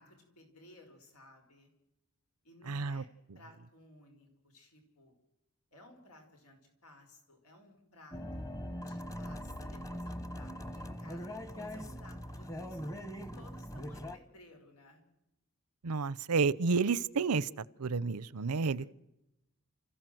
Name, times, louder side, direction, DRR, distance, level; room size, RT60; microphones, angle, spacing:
voice 1, 0.0-1.7 2.4-3.1 3.3-5.1 5.7-8.4 8.8-12.8 13.2-15.0 18.6-18.9, left 1 dB, 90° left, 5.1 m, -58 dB
voice 2, 2.7-3.0 15.8-17.5 17.8-18.9, right 4 dB, 90° right, 0.7 m, -30 dB
sound 1, 8.1-14.2, equal, 15° left, 1.1 m, -41 dB
29.0 x 15.0 x 7.8 m
head